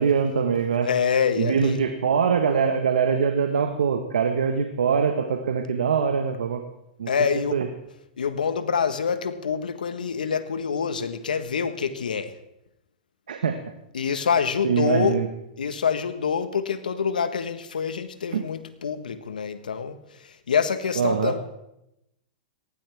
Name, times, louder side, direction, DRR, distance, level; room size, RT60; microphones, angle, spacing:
voice 1, 0.0-0.9 1.4-6.6 7.0-7.1 7.5-7.7 13.3-13.6 14.6-15.3 18.3-18.4 21.0-21.3, right 6 dB, 85° right, 6 dB, 1.5 m, -23 dB
voice 2, 0.8-1.8 7.1-7.6 8.2-12.4 13.9-15.2 15.6-21.4, left 6 dB, 90° left, 11 dB, 1.4 m, -26 dB
18.5 x 16.5 x 3.6 m, 0.84 s
hypercardioid pair, 115°, 4 cm